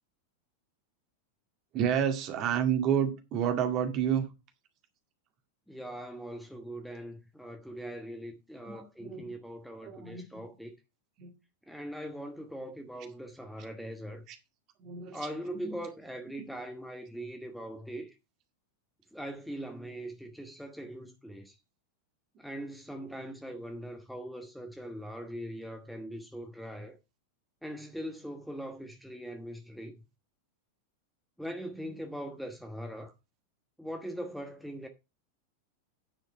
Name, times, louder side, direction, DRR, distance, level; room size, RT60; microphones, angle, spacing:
voice 1, 1.7-4.3 8.7-9.2 9.8-10.4 11.2-11.3 14.3-14.4 14.8-15.2 15.6-15.8, right 8 dB, 35° right, 2.0 m, -30 dB
voice 2, 5.7-10.7 11.7-14.2 15.1-18.1 19.1-21.5 22.4-27.0 27.6-30.0 31.4-33.1 33.8-34.9, equal, ahead, 1.2 m, -41 dB
9.8 x 5.2 x 5.4 m
figure-of-eight pair, 90°, 0 cm